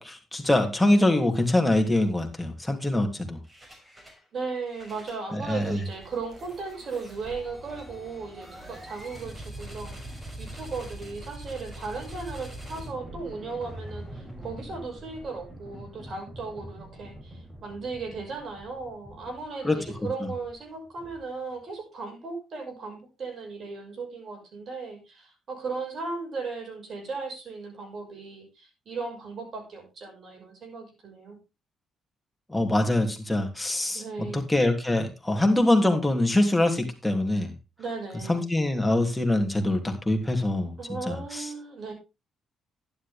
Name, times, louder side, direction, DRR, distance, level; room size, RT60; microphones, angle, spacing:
voice 1, 0.0-3.4 5.3-5.8 19.6-19.8 32.5-34.0 34.3-37.5 38.3-40.7 41.1-41.5, left 1 dB, 10° left, 3 dB, 3.1 m, -24 dB
sound 1, 3.4-4.2 4.6-21.5, right 1 dB, 20° right, 5.2 m, -44 dB
voice 2, 4.3-31.4 33.9-34.4 37.8-38.4 40.8-41.9, right 4 dB, 50° right, 3 dB, 6.2 m, -36 dB
11.5 x 11.0 x 3.6 m, 0.27 s
cardioid pair, 90°, 0 cm